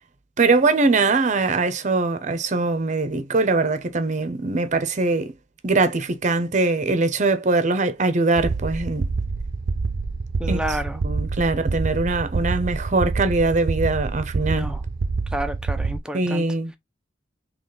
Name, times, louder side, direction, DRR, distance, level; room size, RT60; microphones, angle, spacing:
voice 1, 0.4-5.3 5.6-9.0 10.5-10.6 11.0-14.7 16.1-16.8, right 3 dB, 40° right, 0.7 m, -22 dB
sound 1, 8.4-16.0, right 4 dB, 75° right, 0.5 m, -27 dB
voice 2, 10.4-11.0 14.5-14.8 15.3-16.5, equal, 5° right, 0.6 m, -30 dB
4.1 x 3.1 x 3.1 m
head